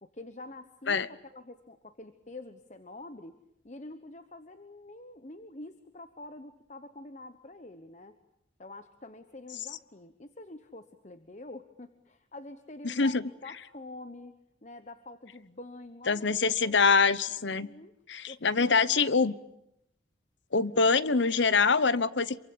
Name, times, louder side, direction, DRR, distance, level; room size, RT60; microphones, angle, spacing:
voice 1, 0.0-3.4 3.6-8.2 8.6-13.1 13.4-14.3 14.6-16.4 16.6-16.8 17.6-17.9 18.3-19.1, left 2 dB, 40° left, 10 dB, 1.1 m, -46 dB
voice 2, 12.8-13.2 16.1-17.7 18.1-19.3 20.5-22.4, left 4 dB, 75° left, 17 dB, 1.0 m, -24 dB
27.0 x 24.0 x 8.6 m, 0.80 s
head